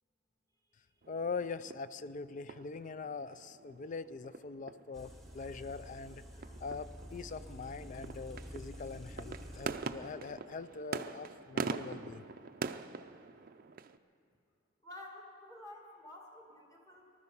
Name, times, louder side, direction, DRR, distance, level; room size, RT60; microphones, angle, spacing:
sound 1, 1.0-14.0, right 4 dB, 45° right, 0.4 m, -44 dB
voice 1, 1.1-6.2 6.6-12.2, left 4 dB, 40° left, 14 dB, 0.4 m, -42 dB
sound 2, 4.9-10.0, equal, ahead, 1.3 m, -49 dB
voice 2, 14.8-17.1, left 1 dB, 20° left, -1 dB, 2.2 m, -51 dB
19.5 x 12.5 x 5.4 m, 2.4 s
head